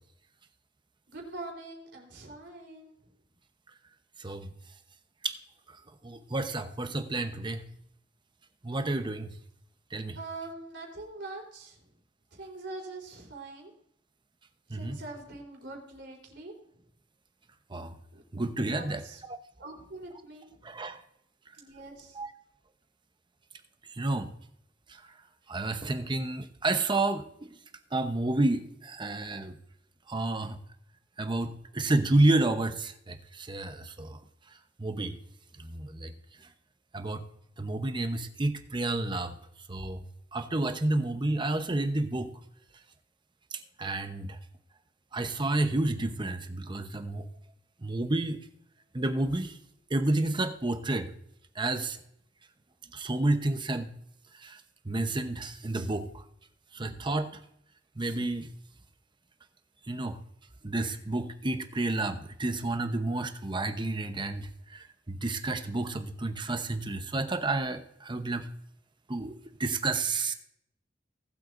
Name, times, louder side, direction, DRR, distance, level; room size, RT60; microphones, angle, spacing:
voice 1, 1.1-3.0 10.2-11.8 12.4-13.7 14.7-16.5 18.1-18.2 18.7-19.2 19.6-20.5 21.6-22.2, right 2 dB, 65° right, 1 dB, 3.9 m, -43 dB
voice 2, 4.2-4.5 5.2-5.3 6.0-7.7 8.6-9.4 9.9-10.2 14.7-15.0 17.7-18.0 18.3-19.0 20.6-21.0 22.1-22.3 23.9-24.3 24.9-25.0 25.5-27.5 27.9-29.6 30.1-30.6 31.2-34.2 34.8-35.2 35.6-36.1 36.9-37.2 37.6-39.4 39.7-40.0 40.3-42.3 43.5-44.4 45.1-47.3 47.8-48.4 48.9-49.6 49.9-51.1 51.5-52.0 52.9-53.9 54.3-56.2 56.7-57.4 58.0-58.5 59.9-60.2 60.6-68.5 69.1-70.3, right 2 dB, 25° right, 8 dB, 0.9 m, -30 dB
19.0 x 7.8 x 2.6 m, 0.74 s
head